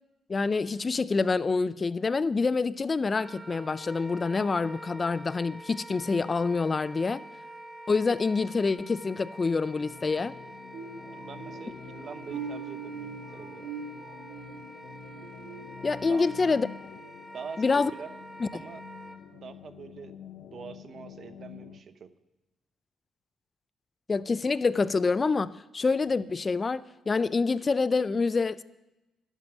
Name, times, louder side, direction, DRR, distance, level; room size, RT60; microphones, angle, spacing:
voice 1, 0.3-7.2 7.9-10.4 15.8-16.7 17.6-17.9 18.4-18.5 24.1-28.6, left 4 dB, 30° left, 17 dB, 0.3 m, -26 dB
Wind instrument woodwind instrument, 3.1-19.2, right 1 dB, 10° right, 1.5 m, -46 dB
sound 1, 9.8-21.8, left 9 dB, 75° left, 0.6 m, -48 dB
sound 2, 10.7-16.4 16.8-17.1 17.6-17.8, right 6 dB, 80° right, 3.1 m, -43 dB
voice 2, 11.1-13.7 16.1-16.3 17.3-18.1 18.5-18.8 19.3-22.1, right 6 dB, 55° right, 12 dB, 0.7 m, -44 dB
12.0 x 8.2 x 7.0 m, 1.0 s
cardioid pair, 90°, 0 cm